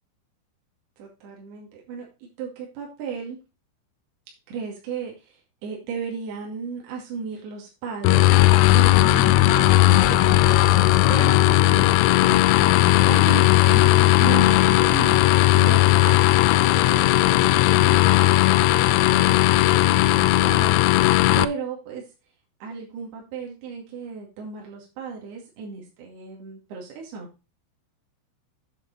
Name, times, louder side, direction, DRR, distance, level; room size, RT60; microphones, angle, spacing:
voice 1, 1.0-3.4 4.5-16.2 16.5-21.0 21.4-22.0 22.6-27.3, right 5 dB, 55° right, -1 dB, 3.9 m, -35 dB
sound 1, 8.0-21.4, left 16 dB, 85° left, 3.1 m, -17 dB
9.1 x 6.7 x 4.3 m, 0.29 s
omnidirectional pair, 5.9 m